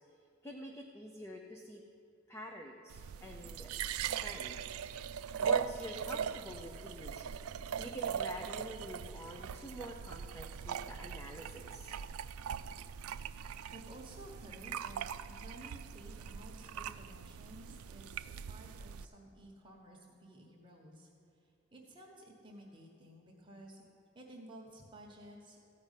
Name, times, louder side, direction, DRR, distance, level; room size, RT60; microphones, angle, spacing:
voice 1, 0.4-1.8 2.3-3.7 4.1-4.8 5.1-7.3 7.8-12.0, equal, 10° left, 1 dB, 0.6 m, -47 dB
sound 1, 2.9-19.1, right 7 dB, 90° right, 0.4 m, -40 dB
voice 2, 13.7-21.1 21.7-23.8 24.1-25.7, right 1 dB, 20° right, -1 dB, 1.2 m, -54 dB
14.5 x 5.4 x 9.0 m, 2.5 s
head